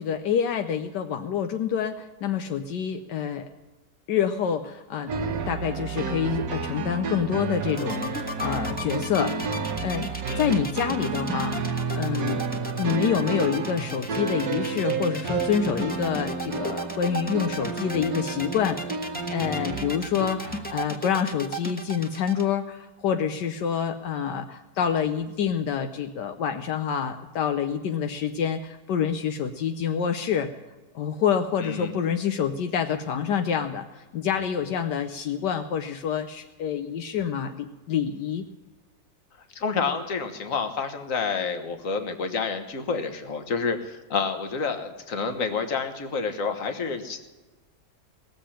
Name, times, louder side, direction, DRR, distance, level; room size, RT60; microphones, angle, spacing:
voice 1, 0.0-3.5 4.1-5.1 5.4-9.4 9.8-12.4 12.8-18.8 19.3-30.5 30.9-38.4, left 8 dB, 75° left, 7 dB, 1.4 m, -27 dB
sound 1, 5.1-20.7, right 4 dB, 60° right, 1.5 m, -31 dB
sound 2, 7.7-22.5, equal, 5° left, 1.2 m, -35 dB
voice 2, 31.6-31.9 39.5-47.3, left 5 dB, 50° left, 7 dB, 1.7 m, -29 dB
19.0 x 7.5 x 10.0 m, 1.2 s
omnidirectional pair, 1.9 m